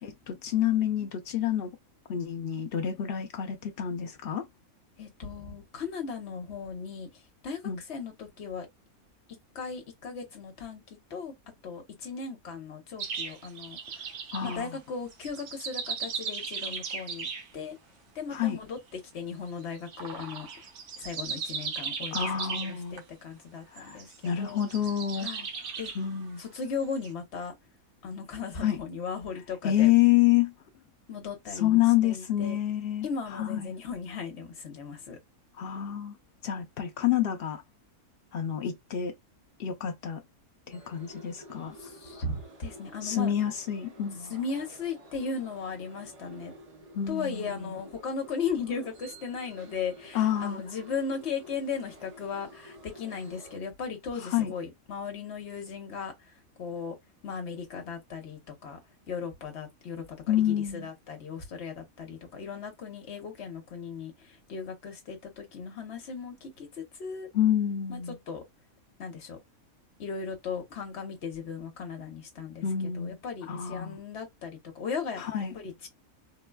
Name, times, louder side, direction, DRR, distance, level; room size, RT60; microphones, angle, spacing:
voice 1, 0.0-1.7 2.1-4.5 7.6-7.8 14.3-14.8 18.3-18.6 22.1-23.0 23.7-25.3 26.0-26.4 28.6-28.8 29.6-30.5 31.6-33.1 33.3-33.7 35.5-36.2 36.4-37.6 38.3-39.1 39.6-40.2 40.7-41.7 43.0-44.3 46.9-47.8 50.1-50.6 54.2-54.5 60.3-60.9 67.3-68.2 72.6-73.2 73.5-74.0 75.2-75.5, left 11 dB, 90° left, 0.5 m, -28 dB
voice 2, 5.0-7.1 7.4-8.7 9.5-11.3 11.6-14.1 14.4-17.3 17.5-17.8 18.1-20.5 21.0-22.3 22.7-24.6 25.2-25.5 25.8-25.9 26.4-27.5 28.0-29.9 31.1-32.6 33.0-35.2 41.8-43.3 44.3-46.5 47.1-56.1 56.6-56.9 57.2-58.8 59.1-67.3 67.9-68.0 68.3-68.4 69.0-69.4 70.0-75.2 75.5-75.9, left 5 dB, 50° left, 1.1 m, -37 dB
sound 1, 13.0-14.6 15.1-17.5 19.7-23.0 23.8-26.1 26.8-27.1, right 5 dB, 85° right, 1.3 m, -37 dB
sound 2, 40.7-53.6, equal, 40° right, 0.6 m, -51 dB
3.9 x 2.2 x 2.2 m
omnidirectional pair, 1.5 m